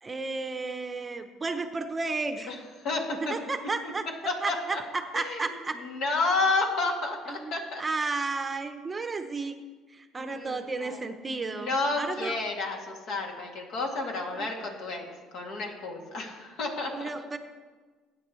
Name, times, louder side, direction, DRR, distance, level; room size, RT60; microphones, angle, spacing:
voice 1, 0.0-2.5 3.2-4.0 4.4-5.8 7.3-7.5 7.8-9.6 9.9-12.4 14.4-14.5 16.9-17.4, right 3 dB, 20° right, 7 dB, 0.7 m, -33 dB
voice 2, 2.8-3.3 3.8-3.9 4.2-4.8 5.1-5.4 5.8-7.8 10.2-11.0 11.5-15.0 15.3-17.1, left 3 dB, 65° left, 1 dB, 2.4 m, -31 dB
19.5 x 9.0 x 3.1 m, 1.4 s
cardioid pair, 115°, 0 cm